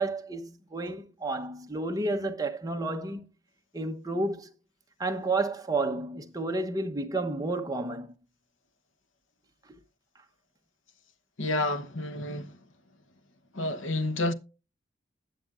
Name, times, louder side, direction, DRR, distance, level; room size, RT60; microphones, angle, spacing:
voice 1, 0.0-3.2 3.7-4.5 5.0-8.1, right 2 dB, 20° right, 1.0 m, -31 dB
voice 2, 11.4-12.6 13.5-14.3, left 2 dB, 85° left, 1.1 m, -29 dB
20.5 x 7.2 x 2.5 m
head